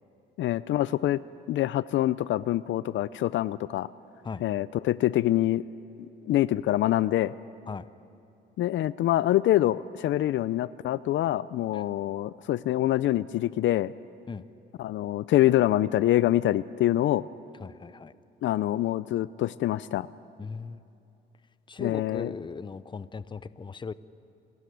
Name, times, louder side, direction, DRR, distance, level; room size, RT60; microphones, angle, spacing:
voice 1, 0.4-1.2 1.5-3.9 4.4-5.6 6.0-7.3 8.6-13.9 14.8-17.2 18.4-20.1 21.8-22.3, left 14 dB, 70° left, 18 dB, 0.5 m, -25 dB
voice 2, 17.6-18.1 20.4-20.8 21.7-23.9, left 5 dB, 25° left, 16 dB, 0.6 m, -38 dB
28.0 x 13.0 x 9.3 m, 2.7 s
cardioid pair, 90°, 20 cm